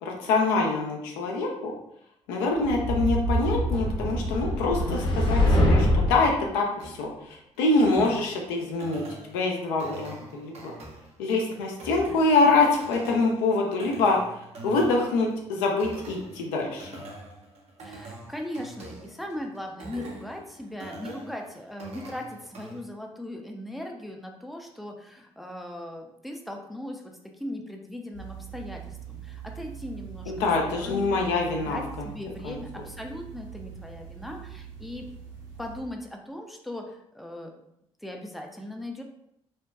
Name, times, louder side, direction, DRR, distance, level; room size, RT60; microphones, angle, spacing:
voice 1, 0.0-1.7 2.3-10.7 11.2-14.2 14.6-16.9 30.3-32.1 32.4-32.6, left 3 dB, 75° left, 0 dB, 0.4 m, -25 dB
sound 1, 2.6-6.3, left 1 dB, 35° left, 0.7 m, -24 dB
sound 2, 6.8-22.8, right 2 dB, 50° right, 0.6 m, -45 dB
voice 2, 17.8-30.3 30.7-31.1 31.6-35.1 35.6-37.5 38.0-39.0, left 1 dB, ahead, 2 dB, 0.4 m, -38 dB
sound 3, 28.1-35.8, right 9 dB, 65° right, 1.0 m, -43 dB
2.6 x 2.1 x 2.3 m, 0.77 s
hypercardioid pair, 45°, 14 cm